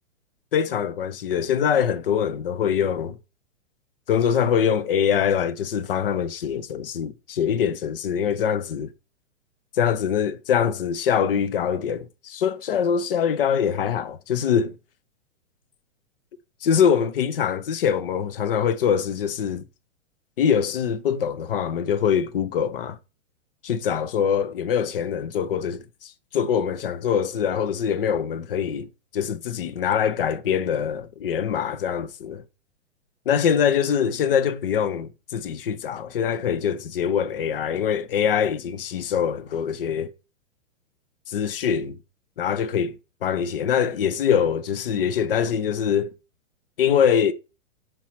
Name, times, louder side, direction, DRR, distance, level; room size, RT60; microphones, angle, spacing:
voice 1, 0.5-3.2 4.1-8.9 9.7-14.8 16.6-19.6 20.4-23.0 23.6-32.4 33.3-40.1 41.3-42.0 42.4-46.1 46.8-47.3, left 8 dB, 45° left, 0.7 m, -23 dB
4.5 x 4.5 x 5.7 m
hypercardioid pair, 165°, 39 cm